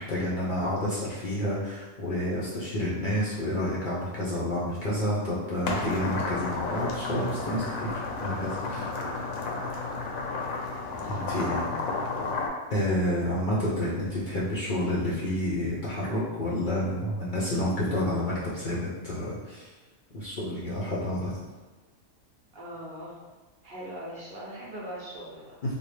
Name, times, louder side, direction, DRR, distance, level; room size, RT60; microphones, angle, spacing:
voice 1, 0.0-8.9 11.1-11.7 12.7-19.7 20.1-21.4 25.6-25.8, left 1 dB, 50° left, -7 dB, 0.6 m, -29 dB
sound 1, 5.6-12.5, left 3 dB, 85° left, 1.0 m, -32 dB
voice 2, 22.5-23.2 23.6-25.6, equal, 55° right, -5 dB, 0.7 m, -41 dB
3.7 x 2.1 x 3.2 m, 1.3 s
omnidirectional pair, 1.4 m